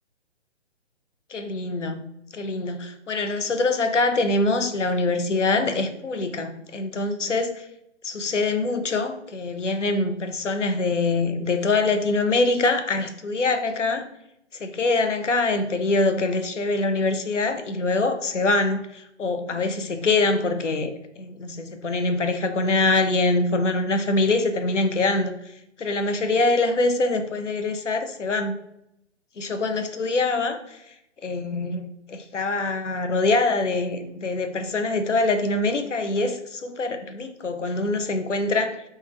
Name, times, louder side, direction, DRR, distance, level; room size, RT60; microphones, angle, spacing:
voice 1, 1.3-7.7 8.0-14.1 14.6-25.3 25.8-28.6 29.4-30.9 31.2-38.8, left 3 dB, 90° left, 0.6 m, -24 dB
3.4 x 2.2 x 4.3 m
figure-of-eight pair, 140°, 35 cm